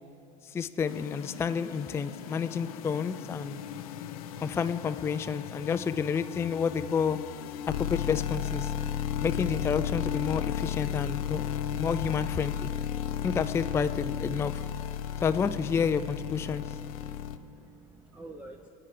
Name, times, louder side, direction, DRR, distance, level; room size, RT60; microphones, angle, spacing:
voice 1, 0.5-3.6 4.4-7.2 7.7-8.7 9.2-11.4 11.7-12.7 13.2-14.6 15.2-16.8, left 6 dB, 15° left, 10 dB, 0.3 m, -30 dB
sound 1, 0.9-17.4, left 9 dB, 90° left, 0.6 m, -34 dB
voice 2, 16.5-18.7, right 2 dB, 5° right, 4 dB, 0.7 m, -49 dB
21.0 x 8.7 x 5.0 m, 2.9 s
supercardioid pair, 105°, 18 cm